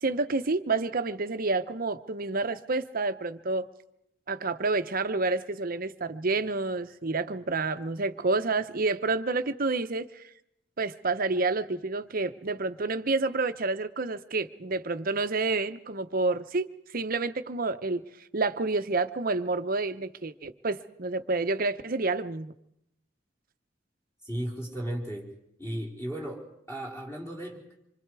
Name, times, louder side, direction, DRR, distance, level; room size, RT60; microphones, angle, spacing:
voice 1, 0.0-3.7 4.3-10.3 10.8-16.7 16.9-18.0 18.3-22.5, right 3 dB, 50° right, 10 dB, 0.9 m, -29 dB
voice 2, 24.2-25.3 25.6-26.4 26.7-27.6, right 1 dB, 15° left, -1 dB, 4.6 m, -35 dB
26.5 x 24.5 x 4.8 m, 0.79 s
head